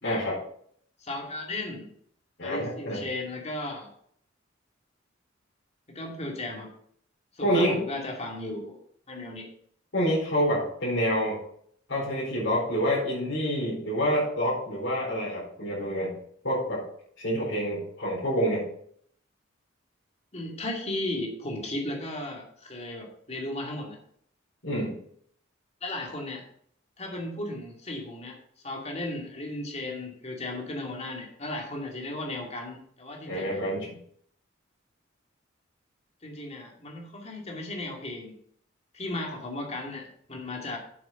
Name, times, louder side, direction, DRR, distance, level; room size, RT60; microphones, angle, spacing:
voice 1, 0.0-0.4 2.4-3.0 7.4-7.7 9.9-11.4 11.9-16.2 16.4-16.8 17.2-18.7 24.6-25.0 33.3-34.0, equal, 65° left, -9 dB, 4.5 m, -27 dB
voice 2, 1.0-1.9 2.4-3.9 5.9-6.7 7.3-8.8 9.1-9.5 20.3-24.0 25.8-26.4 27.0-28.4 28.6-33.6 36.2-38.4 38.9-40.8, left 1 dB, 35° left, 1 dB, 2.4 m, -35 dB
8.5 x 6.8 x 5.9 m, 0.63 s
head